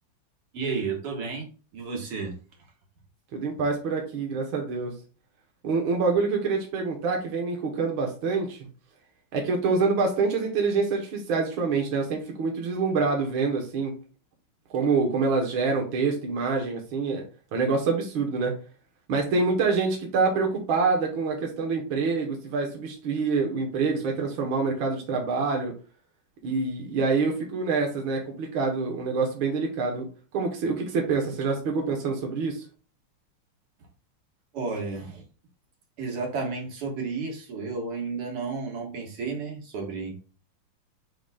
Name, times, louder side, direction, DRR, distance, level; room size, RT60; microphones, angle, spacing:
voice 1, 0.5-1.5 1.7-2.4 34.5-35.2 36.0-40.1, right 4 dB, 85° right, 0 dB, 2.7 m, -32 dB
voice 2, 3.3-4.9 5.6-8.7 9.3-13.9 14.7-17.2 17.5-18.5 19.1-25.7 26.4-30.1 30.3-32.7, right 4 dB, 65° right, 1 dB, 2.0 m, -26 dB
9.9 x 4.0 x 2.4 m, 0.36 s
omnidirectional pair, 2.4 m